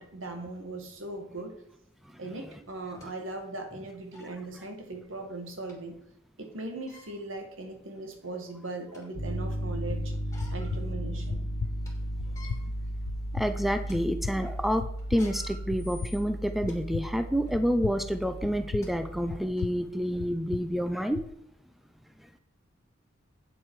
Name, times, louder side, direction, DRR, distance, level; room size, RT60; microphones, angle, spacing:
voice 1, 0.0-1.6 2.2-6.0 6.4-10.1 10.5-11.5, right 2 dB, 80° right, 4 dB, 1.9 m, -39 dB
sound 1, 1.9-2.0 2.7-3.1 3.7-3.8 4.1-4.4 5.7-5.8 6.7-7.1 7.9-8.0 8.5-9.2 10.1-10.8 11.2-11.3 11.6-11.9 12.2-12.6 13.2-13.4 13.8-14.0 15.0-16.8 17.4-17.6 18.4-18.5 18.8-18.9 19.6-19.7, left 2 dB, 15° left, 3.2 m, -51 dB
Piano, 9.1-19.4, equal, 55° left, 1.6 m, -35 dB
sound 2, 9.9-21.3, left 6 dB, 80° left, 0.3 m, -40 dB
voice 2, 13.3-21.2, equal, ahead, 9 dB, 0.5 m, -28 dB
8.9 x 7.8 x 4.8 m, 0.75 s
head